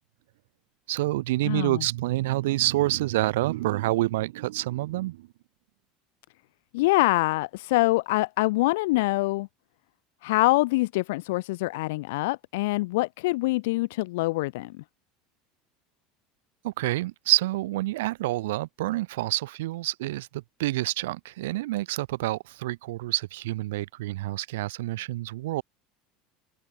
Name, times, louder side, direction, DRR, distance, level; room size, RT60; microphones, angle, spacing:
voice 1, 0.9-5.3 16.6-25.6, right 17 dB, 85° right, 1.1 m, -28 dB
voice 2, 1.4-1.8 6.7-9.5 10.2-14.8, left 21 dB, 80° left, 0.4 m, -25 dB
supercardioid pair, 110°, 0 cm